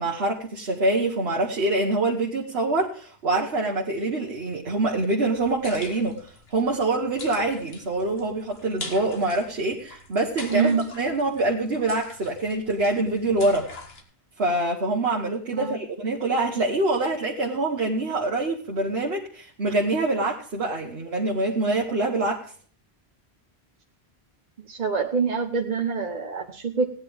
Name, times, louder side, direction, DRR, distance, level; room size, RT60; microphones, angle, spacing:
voice 1, 0.0-13.7 14.4-22.5, right 2 dB, 75° right, 0 dB, 1.5 m, -25 dB
sound 1, 5.4-14.0, left 3 dB, 75° left, 2.0 m, -43 dB
voice 2, 10.5-10.9 15.6-15.8 24.7-26.9, right 5 dB, 45° right, 2 dB, 0.9 m, -25 dB
17.0 x 9.9 x 3.5 m, 0.43 s
omnidirectional pair, 1.0 m